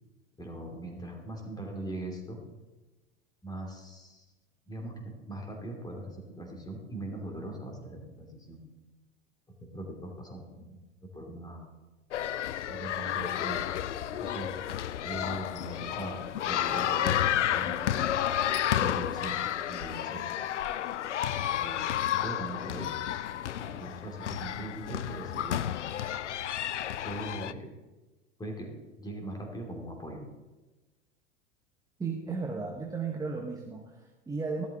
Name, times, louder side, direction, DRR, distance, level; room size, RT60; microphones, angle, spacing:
voice 1, 0.4-2.4 3.4-4.2 4.7-8.6 9.6-10.8 11.1-11.7 12.7-13.7 14.2-14.6 15.0-18.1 18.7-20.2 21.2-23.0 23.5-25.6 27.0-27.7 28.4-28.7 29.0-30.3, right 1 dB, 10° left, 2 dB, 2.8 m, -40 dB
sound 1, 12.1-27.5, left 11 dB, 70° left, 0.6 m, -31 dB
voice 2, 32.0-34.7, right 4 dB, 10° right, 1 dB, 1.2 m, -35 dB
14.5 x 12.0 x 3.7 m, 1.2 s
figure-of-eight pair, 85°, 37 cm